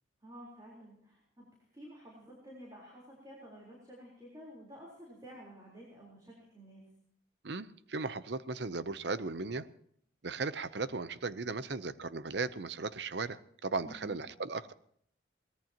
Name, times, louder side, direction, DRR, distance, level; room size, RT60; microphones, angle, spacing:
voice 1, 0.2-1.5 1.7-6.9 13.8-14.2, equal, 20° right, -4 dB, 4.0 m, -51 dB
voice 2, 7.4-9.7 10.2-14.7, right 3 dB, 60° right, 15 dB, 0.7 m, -37 dB
23.0 x 19.0 x 2.9 m, 0.67 s
head